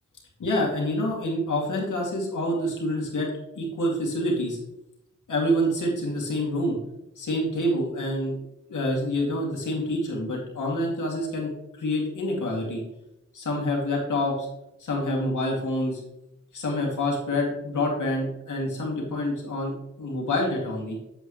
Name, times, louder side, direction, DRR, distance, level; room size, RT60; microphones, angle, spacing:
voice 1, 0.4-3.3 3.5-4.6 5.3-6.8 7.2-8.4 8.7-11.5 11.8-12.8 13.3-14.5 14.8-16.0 16.5-21.0, left 1 dB, 80° left, -2 dB, 2.6 m, -27 dB
8.6 x 7.8 x 3.2 m, 0.89 s
wide cardioid pair, 90°, 30 cm